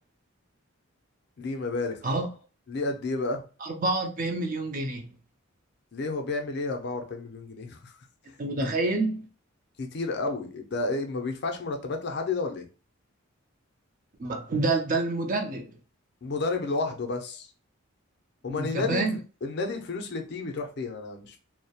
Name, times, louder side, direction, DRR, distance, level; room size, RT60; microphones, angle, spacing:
voice 1, 1.4-2.3 2.7-3.4 5.9-7.9 8.6-8.7 9.8-12.7 16.2-17.5 18.4-19.1 19.4-21.4, left 3 dB, 50° left, 0.4 m, -31 dB
voice 2, 3.6-5.1 8.4-9.3 14.2-15.7 18.5-19.2, right 2 dB, 40° right, 0.4 m, -28 dB
2.2 x 2.0 x 2.7 m
head